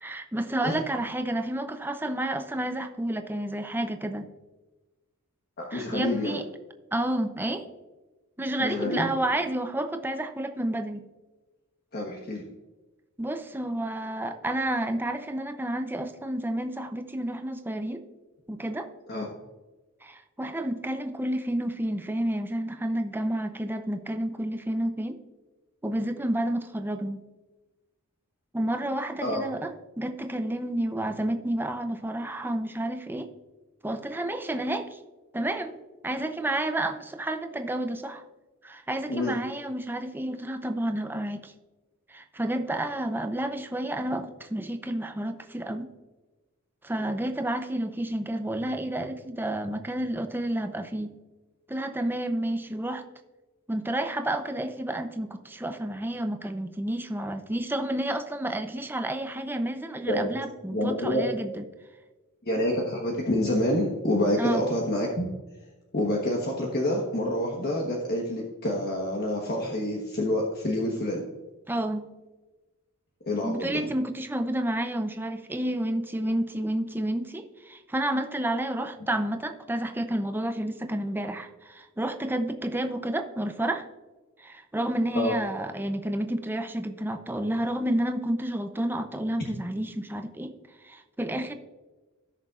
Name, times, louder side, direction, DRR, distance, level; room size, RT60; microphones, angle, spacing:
voice 1, 0.0-4.3 5.7-6.4 6.9-7.6 8.4-11.0 13.2-18.0 18.5-18.9 20.0-25.2 25.8-27.2 28.5-33.3 33.8-35.0 35.3-35.8 36.0-38.2 38.6-41.5 42.1-45.9 46.8-51.1 51.7-53.0 53.7-61.6 64.4-64.6 71.7-72.0 73.4-83.9 84.4-90.6 90.8-91.5, right 1 dB, 10° right, 7 dB, 0.6 m, -30 dB
voice 2, 5.6-6.4 8.6-9.1 11.9-12.4 19.1-19.3 29.2-29.4 39.1-39.3 60.0-60.3 60.7-61.2 62.4-65.3 65.9-71.2 73.3-73.8 85.1-85.3, left 1 dB, 45° left, -1 dB, 1.3 m, -27 dB
16.5 x 6.6 x 2.5 m, 1.2 s
head